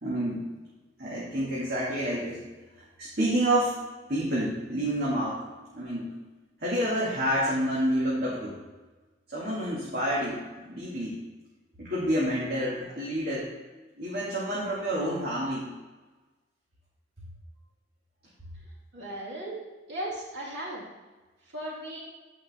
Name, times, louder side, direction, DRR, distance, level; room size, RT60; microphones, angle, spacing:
voice 1, 0.0-0.4 1.0-2.4 3.0-3.7 4.1-5.4 5.7-6.2 6.6-8.6 9.3-11.2 11.8-13.5 14.0-15.7, right 1 dB, 55° right, -7 dB, 2.4 m, -28 dB
voice 2, 18.9-20.8 21.5-22.0, right 1 dB, 75° right, -5 dB, 2.8 m, -36 dB
14.5 x 5.5 x 3.7 m, 1.2 s
head